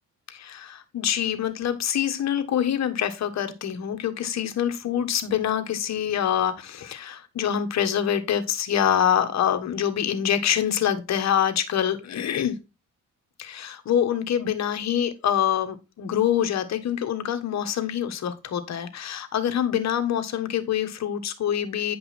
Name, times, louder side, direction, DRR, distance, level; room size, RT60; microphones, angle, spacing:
voice 1, 0.3-12.5 13.4-22.0, left 9 dB, 65° left, 1.6 m, -25 dB
9.4 x 5.4 x 4.4 m
cardioid pair, 90°, 30 cm